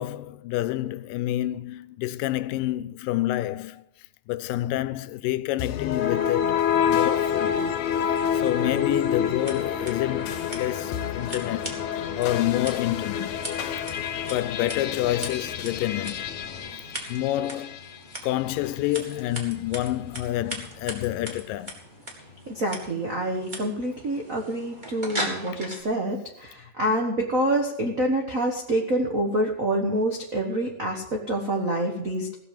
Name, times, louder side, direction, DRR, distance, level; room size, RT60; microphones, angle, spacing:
voice 1, 0.0-3.8 4.3-6.6 6.9-7.7 8.3-11.7 12.2-13.4 14.3-16.3 17.1-17.8 18.2-21.8, left 15 dB, 85° left, 2.2 m, -28 dB
sound 1, 5.6-17.9, left 8 dB, 70° left, 1.9 m, -28 dB
Scissors, 9.3-25.8, right 1 dB, 15° right, 2.0 m, -40 dB
voice 2, 22.5-32.3, right 1 dB, 80° right, 0.7 m, -27 dB
16.5 x 7.0 x 7.2 m
omnidirectional pair, 3.9 m